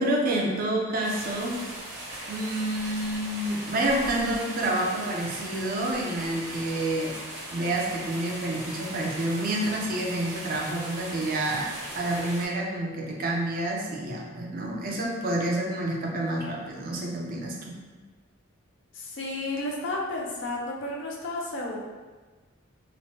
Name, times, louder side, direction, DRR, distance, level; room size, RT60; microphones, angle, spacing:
voice 1, 0.0-1.6 2.3-7.2 7.5-17.8, right 1 dB, 45° right, -1 dB, 0.4 m, -28 dB
sound 1, 1.0-12.5, right 1 dB, 70° right, 1.1 m, -39 dB
voice 2, 19.0-21.8, left 2 dB, 65° left, -2 dB, 0.5 m, -32 dB
3.0 x 2.1 x 2.8 m, 1.3 s
head